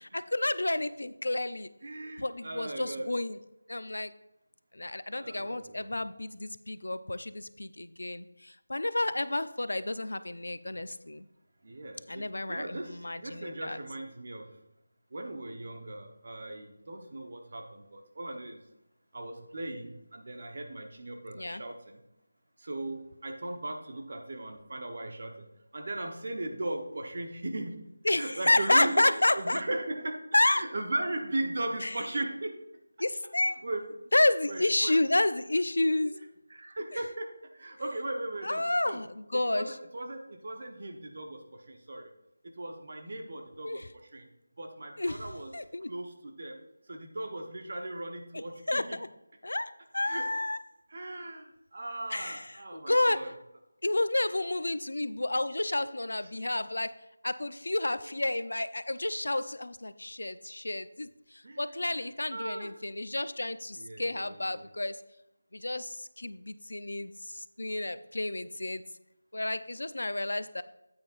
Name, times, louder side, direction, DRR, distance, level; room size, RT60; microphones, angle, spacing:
voice 1, 0.1-1.7 2.2-3.4 3.7-4.1 4.7-11.3 12.1-13.8 21.3-21.6 28.0-29.6 30.3-30.6 31.8-32.0 33.0-33.6 34.1-36.2 36.9-37.0 38.4-39.7 43.6-43.9 45.0-45.9 48.3-49.1 49.4-50.6 52.1-53.2 53.8-56.9 57.2-65.0 65.5-68.8 69.3-70.6, left 2 dB, 75° left, 13 dB, 0.6 m, -30 dB
voice 2, 1.8-3.1 5.1-5.8 11.6-14.6 15.1-18.6 19.1-22.0 22.6-25.5 25.7-32.6 33.6-33.9 34.5-35.0 36.0-36.1 36.5-39.0 39.3-42.1 42.6-43.8 44.1-44.3 44.6-45.5 45.9-46.6 46.9-49.0 50.0-50.3 50.9-53.3 61.4-62.7 63.7-64.7, right 2 dB, 35° right, 4 dB, 1.0 m, -38 dB
9.3 x 8.8 x 2.6 m, 0.91 s
figure-of-eight pair, 175°, 0 cm